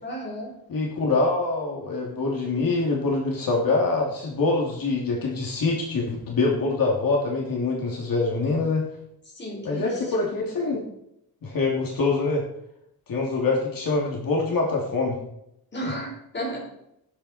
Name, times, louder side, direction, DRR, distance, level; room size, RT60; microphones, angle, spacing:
voice 1, 0.0-0.5 9.3-10.1 15.7-16.7, right 1 dB, 30° left, -1 dB, 4.4 m, -33 dB
voice 2, 0.7-8.8 9.6-10.8 11.4-12.4 13.1-15.2 15.8-15.9, left 3 dB, 70° left, -2 dB, 2.8 m, -25 dB
18.0 x 8.2 x 4.4 m, 0.79 s
wide cardioid pair, 175°, 36 cm